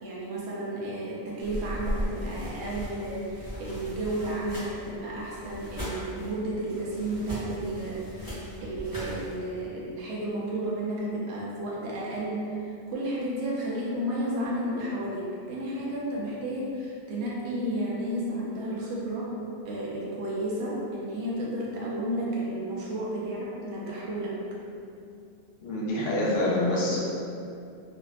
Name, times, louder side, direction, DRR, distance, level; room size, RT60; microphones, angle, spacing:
voice 1, 0.0-8.3 8.6-19.4 19.6-24.4, right 1 dB, 75° right, -5 dB, 0.8 m, -32 dB
sound 1, 1.4-9.4, equal, 20° right, 0.7 m, -38 dB
voice 2, 25.6-27.0, left 1 dB, 65° left, -5 dB, 0.7 m, -26 dB
2.5 x 2.2 x 2.4 m, 2.5 s
omnidirectional pair, 1.2 m